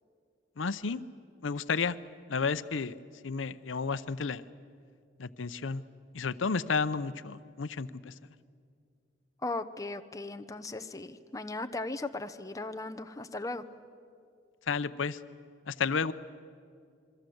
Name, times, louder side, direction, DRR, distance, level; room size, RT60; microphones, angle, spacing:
voice 1, 0.6-1.0 1.4-2.0 2.3-3.0 3.2-4.4 5.2-5.8 6.1-8.1 14.7-15.2 15.7-16.1, left 5 dB, 90° left, 14 dB, 0.7 m, -31 dB
voice 2, 9.4-13.6, left 2 dB, 20° left, 8 dB, 0.8 m, -37 dB
27.5 x 23.0 x 7.9 m, 2.3 s
head